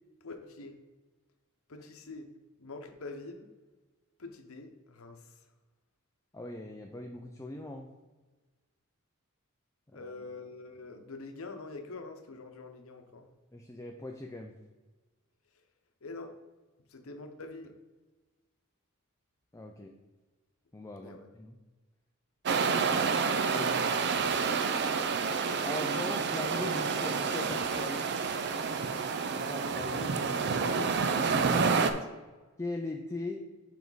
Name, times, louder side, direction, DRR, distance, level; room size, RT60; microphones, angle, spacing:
voice 1, 0.2-0.8 1.7-2.3 2.6-3.5 4.2-5.2 9.9-13.3 16.0-16.3 16.9-17.7 21.0-21.3 29.9-30.1 30.6-31.0 31.8-32.0, left 3 dB, 75° left, 6 dB, 0.8 m, -45 dB
voice 2, 6.3-7.9 9.9-10.3 13.5-14.5 19.5-19.9 20.7-21.6 23.5-23.9 25.6-28.2 29.3-30.8 31.3-31.8 32.6-33.4, left 2 dB, 15° left, 2 dB, 0.4 m, -40 dB
sound 1, 22.5-31.9, right 5 dB, 55° right, 0.5 m, -29 dB
7.2 x 4.6 x 4.0 m, 1.2 s
head